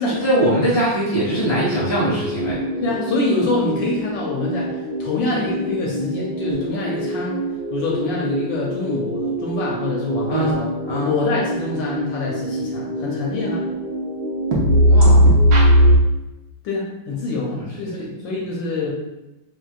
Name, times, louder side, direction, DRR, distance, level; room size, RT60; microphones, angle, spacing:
voice 1, 0.2-2.6 10.3-10.6 10.9-11.1 14.8-15.3 17.5-17.6 18.0-18.1, right 1 dB, 25° right, -8 dB, 0.5 m, -21 dB
sound 1, 1.3-15.9, equal, 70° right, 0.9 m, -21 dB
voice 2, 2.8-7.4 7.7-10.7 11.0-13.6 16.6-18.9, left 3 dB, 70° left, -3 dB, 1.2 m, -25 dB
4.4 x 2.3 x 2.3 m, 0.97 s
omnidirectional pair, 2.4 m